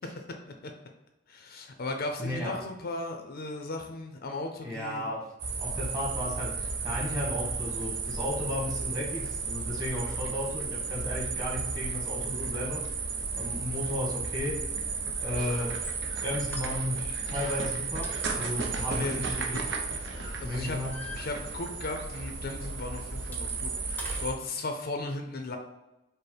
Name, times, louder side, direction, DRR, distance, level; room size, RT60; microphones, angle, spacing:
voice 1, 1.3-5.0 18.9-19.2 19.5-19.6 20.4-20.8 21.1-25.6, left 2 dB, 50° left, 4 dB, 0.5 m, -36 dB
voice 2, 2.2-2.6 4.6-5.3 5.6-13.1 13.3-14.7 15.2-19.6 20.4-21.0, left 1 dB, 20° right, -4 dB, 1.3 m, -34 dB
sound 1, 5.4-24.3, right 4 dB, 65° right, 0.7 m, -34 dB
Cough, 15.3-21.1, right 1 dB, 85° right, 1.2 m, -48 dB
sound 2, 15.7-16.0 16.5-17.2 17.5-17.7 18.0-20.1 20.4-21.9 22.1-22.3 22.6-24.4, left 2 dB, 10° left, 0.6 m, -46 dB
5.2 x 2.1 x 4.3 m, 0.98 s
head